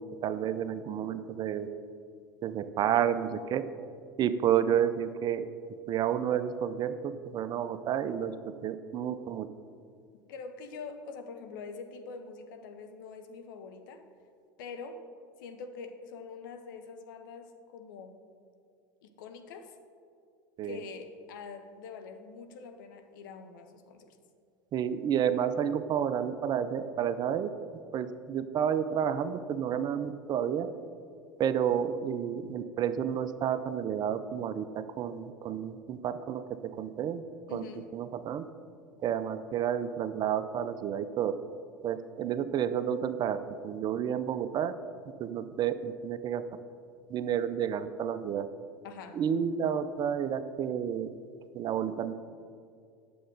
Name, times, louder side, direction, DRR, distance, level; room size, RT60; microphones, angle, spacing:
voice 1, 0.0-1.7 2.4-3.6 4.2-5.5 5.9-9.5 20.6-20.8 24.7-27.5 27.9-30.7 31.4-37.2 37.5-37.7 37.9-38.5 39.0-41.3 41.8-44.7 45.2-46.4 47.1-48.5 49.1-51.1 51.5-52.1, right 9 dB, 40° right, 12 dB, 0.5 m, -30 dB
voice 2, 10.3-14.0 14.6-15.0 15.4-18.2 19.0-19.7 20.6-24.2 37.5-37.9 48.8-49.2, left 5 dB, 70° left, 7 dB, 0.9 m, -44 dB
9.5 x 7.6 x 3.9 m, 2.3 s
hypercardioid pair, 85°, 11 cm